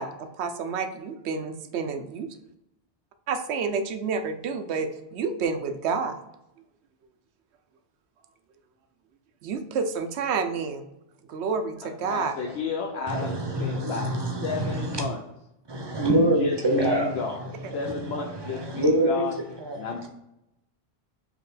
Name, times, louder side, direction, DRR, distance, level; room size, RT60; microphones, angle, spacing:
voice 1, 0.0-2.3 3.3-6.2 9.4-10.8 11.3-12.3, right 5 dB, 80° right, 0.9 m, -29 dB
voice 2, 12.1-13.3 13.6-14.1 14.4-15.2 16.4-17.4 17.7-19.3 19.8-20.1, left 4 dB, 75° left, 0.8 m, -31 dB
voice 3, 13.1-15.0 15.7-19.9, right 1 dB, 30° right, 0.6 m, -26 dB
4.5 x 2.9 x 3.9 m
omnidirectional pair, 1.1 m